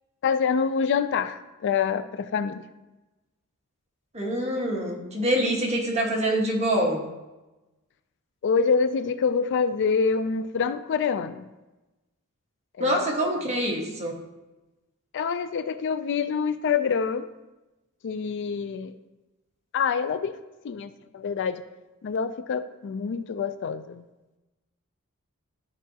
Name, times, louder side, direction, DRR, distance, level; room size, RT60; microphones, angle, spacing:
voice 1, 0.2-2.6 8.4-11.5 12.8-13.0 15.1-17.3 18.0-18.9 19.7-20.3 20.6-21.6 22.0-24.0, left 6 dB, 55° left, 12 dB, 0.4 m, -26 dB
voice 2, 4.1-7.1 12.8-14.2, right 1 dB, 30° right, -1 dB, 1.4 m, -25 dB
12.5 x 4.8 x 2.8 m, 1.1 s
head